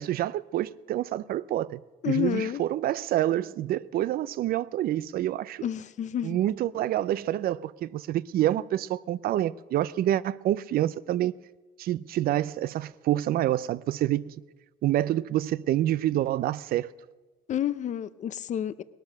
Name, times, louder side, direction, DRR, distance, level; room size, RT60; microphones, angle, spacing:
voice 1, 0.0-5.6 6.2-11.3 11.8-14.3 14.8-16.9, right 13 dB, 60° right, 0.5 m, -27 dB
voice 2, 2.0-2.6 5.6-6.4 17.5-18.8, left 10 dB, 45° left, 0.6 m, -29 dB
18.5 x 12.0 x 6.6 m
cardioid pair, 110°, 17 cm